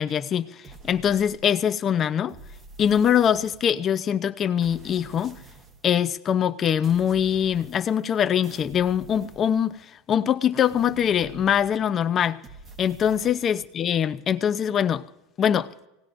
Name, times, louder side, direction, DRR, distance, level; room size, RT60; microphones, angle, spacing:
voice 1, 0.0-2.3 2.8-5.4 5.8-9.8 10.1-12.4 12.8-15.0 15.4-15.7, left 9 dB, 30° left, 0.7 m, -23 dB
sound 1, 0.6-1.8 2.3-3.9 4.6-5.9 6.8-8.1 8.4-10.0 10.6-12.0 12.4-13.7, right 3 dB, 25° right, 1.2 m, -47 dB
25.0 x 18.5 x 2.6 m
supercardioid pair, 135°, 0 cm